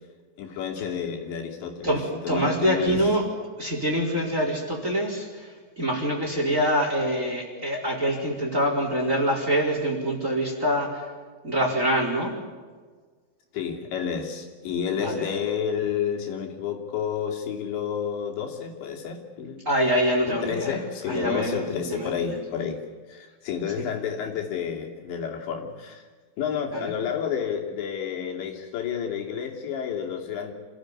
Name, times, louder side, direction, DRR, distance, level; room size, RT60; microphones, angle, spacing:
voice 1, 0.4-3.1 13.5-19.6 20.2-26.1 26.4-30.5, left 7 dB, 75° left, 1 dB, 5.1 m, -30 dB
voice 2, 1.8-3.2 3.6-5.5 5.8-11.0 11.4-12.3 15.0-15.3 19.6-20.7 21.1-22.3 26.7-26.9, equal, 15° right, 0 dB, 4.4 m, -25 dB
27.5 x 16.0 x 9.8 m, 1.5 s
omnidirectional pair, 5.2 m